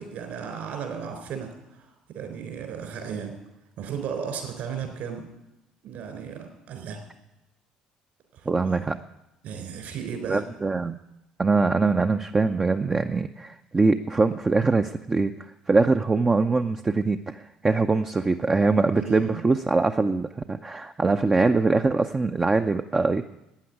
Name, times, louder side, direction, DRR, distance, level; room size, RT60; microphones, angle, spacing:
voice 1, 0.0-3.3 3.8-5.3 5.8-7.0 8.3-8.5 8.8-8.9 9.4-10.4 18.9-19.4, right 7 dB, 55° right, 6 dB, 3.9 m, -35 dB
voice 2, 8.5-9.0 10.3-11.0 11.4-23.2, right 3 dB, 20° right, 7 dB, 0.6 m, -23 dB
13.0 x 9.4 x 9.8 m, 0.92 s
figure-of-eight pair, 55°, 3 cm